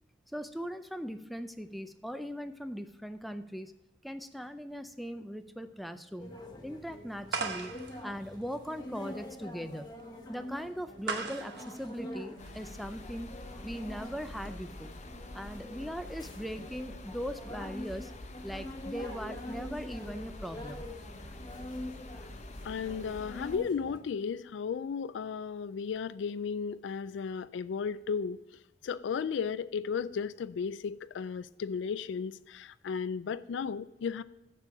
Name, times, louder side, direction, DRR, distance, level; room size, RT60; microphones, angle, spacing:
voice 1, 0.3-3.7 4.0-6.3 6.6-7.7 8.0-9.9 10.3-13.3 13.6-14.9 15.3-18.1 18.4-20.9, equal, ahead, 0.4 m, -40 dB
sound 1, 6.2-24.0, left 1 dB, 20° left, 1.2 m, -45 dB
sound 2, 7.3-12.9, right 4 dB, 60° right, 0.9 m, -40 dB
sound 3, 12.4-23.6, left 1 dB, 40° left, 0.9 m, -46 dB
voice 2, 22.6-28.4 28.8-34.2, left 6 dB, 70° left, 0.3 m, -34 dB
8.2 x 6.9 x 4.7 m
head